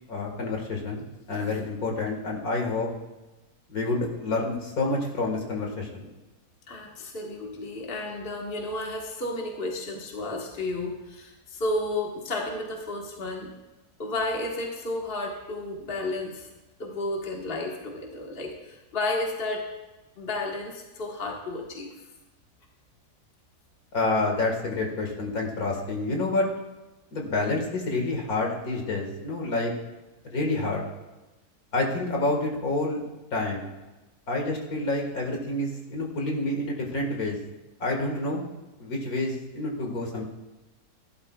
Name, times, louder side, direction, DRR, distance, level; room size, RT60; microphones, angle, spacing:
voice 1, 0.1-2.9 3.7-6.1 23.9-26.5 27.1-29.7 30.3-30.8 31.7-33.0 33.3-33.7 34.3-37.4 37.8-38.4 38.8-40.2, left 2 dB, 65° left, 0 dB, 2.2 m, -28 dB
voice 2, 6.7-13.5 14.0-16.5 16.8-19.6 20.2-21.9, left 2 dB, 35° left, -1 dB, 1.7 m, -32 dB
16.5 x 12.0 x 2.4 m, 1.1 s
omnidirectional pair, 1.7 m